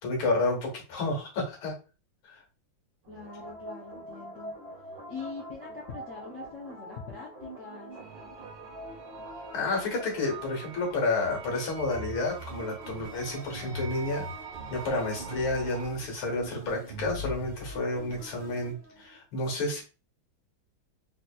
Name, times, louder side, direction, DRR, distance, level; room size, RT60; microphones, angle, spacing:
voice 1, 0.0-1.7 2.2-2.4 9.5-14.3 14.7-19.8, left 2 dB, 80° left, 0 dB, 2.1 m, -30 dB
sound 1, 3.0-11.2 11.8-19.2, equal, 65° right, 1.6 m, -43 dB
voice 2, 3.1-4.5 5.1-7.9, left 5 dB, 60° left, -4 dB, 0.8 m, -43 dB
sound 2, 7.9-15.9, right 6 dB, 85° right, 0.6 m, -45 dB
4.2 x 2.8 x 2.3 m, 0.32 s
omnidirectional pair, 2.2 m